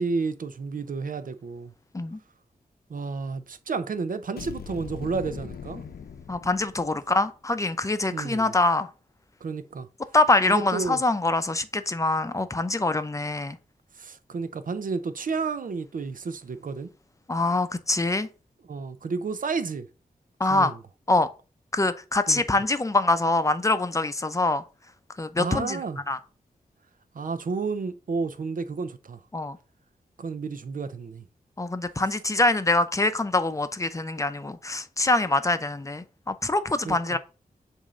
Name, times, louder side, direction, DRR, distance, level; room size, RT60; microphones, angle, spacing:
voice 1, 0.0-1.7 2.9-5.8 8.1-8.5 9.4-9.9 10.5-11.0 13.9-16.9 18.7-19.9 20.5-20.8 22.3-22.4 25.4-26.0 27.1-29.2 30.2-31.2 36.8-37.2, right 4 dB, 65° right, 0.7 m, -31 dB
sound 1, 4.4-7.1, left 6 dB, 85° left, 0.7 m, -40 dB
voice 2, 6.3-8.9 10.1-13.6 17.3-18.3 20.4-20.7 21.1-21.3 21.7-24.6 25.2-25.8 26.1-26.2 29.3-29.6 31.6-37.2, left 2 dB, 20° left, 0.6 m, -24 dB
7.2 x 2.7 x 5.0 m
wide cardioid pair, 80°, 15 cm